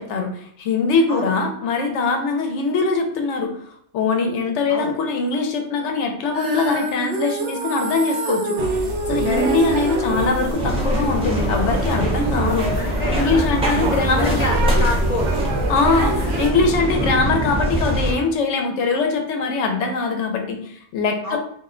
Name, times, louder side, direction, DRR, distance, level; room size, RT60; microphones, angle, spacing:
voice 1, 0.0-8.6 9.1-14.4 15.7-21.4, left 4 dB, 85° left, 4 dB, 0.9 m, -22 dB
Female singing, 6.3-12.6, right 2 dB, 60° right, 0.8 m, -27 dB
sound 1, 8.6-16.5, right 1 dB, 85° right, 0.9 m, -25 dB
sound 2, 10.5-18.1, right 1 dB, 5° right, 0.5 m, -24 dB
voice 2, 12.8-15.5 16.2-16.4 21.2-21.4, left 2 dB, 60° left, -3 dB, 0.4 m, -28 dB
2.4 x 2.1 x 3.6 m, 0.66 s
omnidirectional pair, 1.2 m